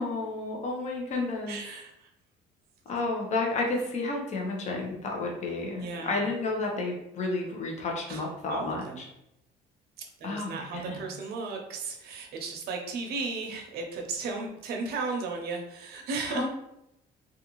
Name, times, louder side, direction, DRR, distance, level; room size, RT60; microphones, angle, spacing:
voice 1, 0.0-1.6 2.9-8.8 10.2-11.0 16.3-16.5, left 3 dB, 45° left, 0 dB, 0.7 m, -31 dB
voice 2, 1.5-2.1 5.8-6.3 8.1-8.2 8.5-9.0 10.0-16.5, right 4 dB, 70° right, 2 dB, 0.6 m, -35 dB
2.5 x 2.4 x 2.9 m, 0.82 s
cardioid pair, 110°, 17 cm